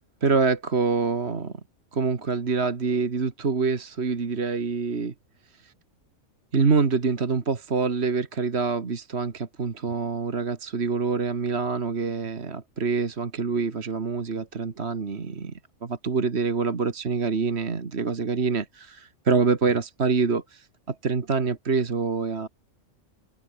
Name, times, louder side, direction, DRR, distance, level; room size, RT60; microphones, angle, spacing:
voice 1, 0.2-1.5 1.9-5.1 5.6-5.7 6.5-15.5 15.8-22.5, right 4 dB, 55° right, 2.1 m, -26 dB
omnidirectional pair, 1.3 m